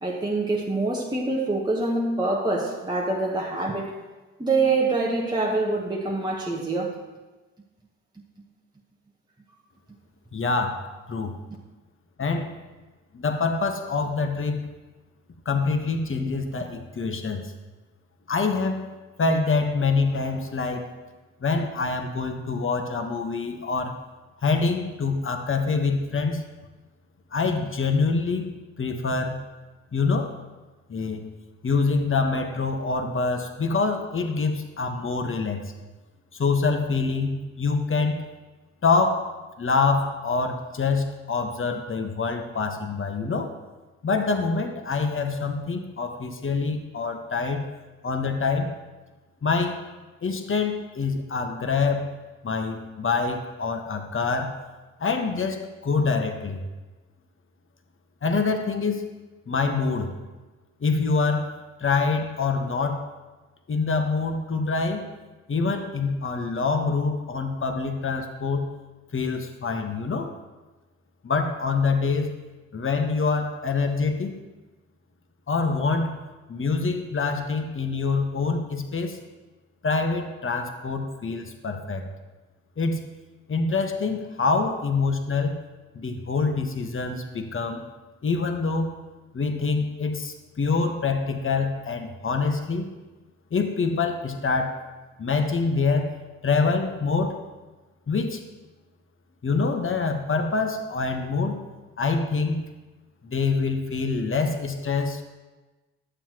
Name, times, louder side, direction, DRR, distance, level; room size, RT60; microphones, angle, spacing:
voice 1, 0.0-4.0 4.4-7.0, right 3 dB, 10° right, -2 dB, 1.1 m, -25 dB
voice 2, 10.3-10.8 11.1-11.4 12.2-12.5 13.1-14.6 15.4-17.5 18.3-18.9 19.2-20.9 21.4-24.0 24.4-26.4 27.3-29.4 29.9-30.3 30.9-31.3 31.6-35.7 36.3-38.2 38.8-39.3 39.6-43.5 44.0-47.7 48.0-48.7 49.4-49.8 50.2-52.1 52.4-54.6 55.0-56.6 58.2-59.1 59.5-60.1 60.8-63.1 63.7-65.1 65.5-68.7 69.1-70.3 71.2-72.3 72.7-74.4 75.5-76.2 76.5-79.2 79.8-82.1 82.8-83.0 83.5-85.6 85.9-87.8 88.2-88.9 89.3-92.9 93.5-94.8 95.2-96.1 96.4-97.4 98.1-98.4 99.4-101.6 102.0-102.6 103.2-105.2, left 4 dB, 35° left, 5 dB, 1.2 m, -25 dB
11.5 x 7.3 x 3.0 m, 1.2 s
hypercardioid pair, 50°, 38 cm